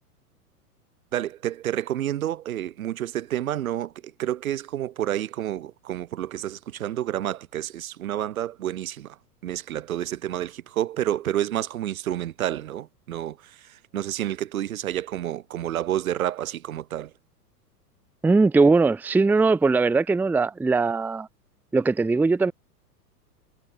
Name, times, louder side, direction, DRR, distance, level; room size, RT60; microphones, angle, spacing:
voice 1, 1.1-9.2 9.4-17.1, right 12 dB, 60° right, 7.0 m, -29 dB
voice 2, 18.2-21.3 21.7-22.5, right 3 dB, 5° right, 0.7 m, -20 dB
figure-of-eight pair, 100°, 48 cm